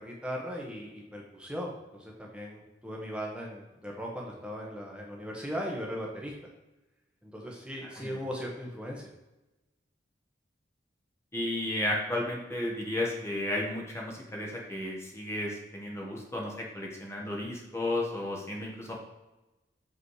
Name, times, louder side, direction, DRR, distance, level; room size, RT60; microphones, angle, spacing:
voice 1, 0.0-6.3 7.2-9.1, equal, 5° right, -2 dB, 1.2 m, -38 dB
voice 2, 11.3-18.9, left 1 dB, 15° left, -1 dB, 1.3 m, -33 dB
7.4 x 5.4 x 4.8 m, 1.0 s
head